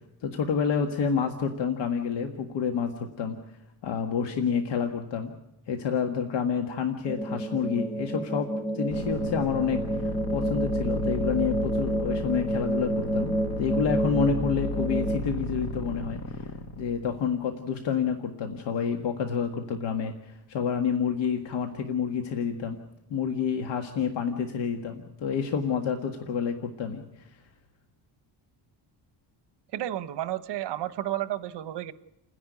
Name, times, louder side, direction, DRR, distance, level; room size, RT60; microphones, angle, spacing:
voice 1, 0.2-3.4 3.8-5.3 5.7-16.5 16.8-22.8 23.1-27.3, left 6 dB, 75° left, 4 dB, 1.8 m, -29 dB
sound 1, 7.1-15.2, right 1 dB, ahead, 0.8 m, -29 dB
sound 2, 8.9-17.3, left 1 dB, 35° left, 1.8 m, -34 dB
voice 2, 29.7-31.9, right 13 dB, 75° right, 13 dB, 1.0 m, -32 dB
29.5 x 10.5 x 9.3 m, 0.91 s
cardioid pair, 175°, 42 cm